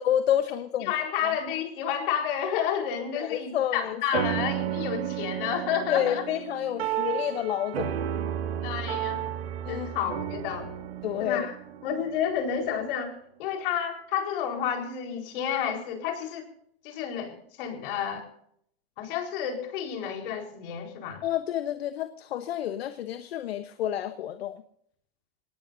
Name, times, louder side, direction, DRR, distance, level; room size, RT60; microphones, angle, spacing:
voice 1, 0.0-0.9 1.2-1.3 3.1-4.3 5.9-7.9 9.6-9.9 11.0-11.5 21.2-24.6, left 11 dB, 80° left, 10 dB, 1.1 m, -29 dB
voice 2, 0.8-6.3 7.2-7.3 8.6-9.3 9.7-10.7 11.2-11.6 11.8-13.1 13.4-16.5 16.8-18.2 19.0-21.2, left 8 dB, 60° left, 3 dB, 4.5 m, -30 dB
sound 1, 4.1-12.9, right 10 dB, 85° right, 2.0 m, -33 dB
23.0 x 19.0 x 2.7 m, 0.69 s
hypercardioid pair, 130°, 30 cm